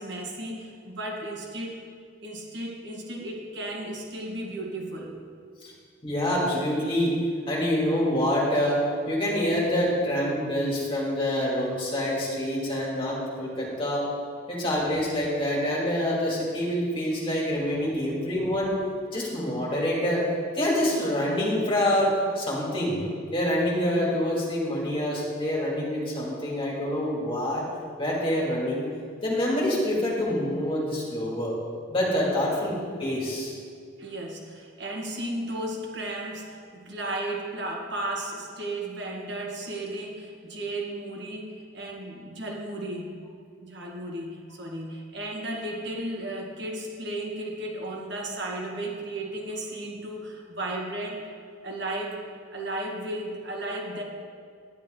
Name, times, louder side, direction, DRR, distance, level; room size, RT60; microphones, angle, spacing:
voice 1, 0.0-1.8 2.2-5.2 34.0-43.1 43.6-51.2 51.6-52.2 52.5-54.0, right 1 dB, 60° right, -1 dB, 1.9 m, -34 dB
voice 2, 6.0-7.1 7.5-8.8 9.1-14.1 14.5-18.7 19.1-20.2 20.5-23.0 23.3-27.6 28.0-28.8 29.2-31.5 31.9-33.5, left 1 dB, 25° left, -5 dB, 2.7 m, -26 dB
10.5 x 10.5 x 4.0 m, 2.1 s
head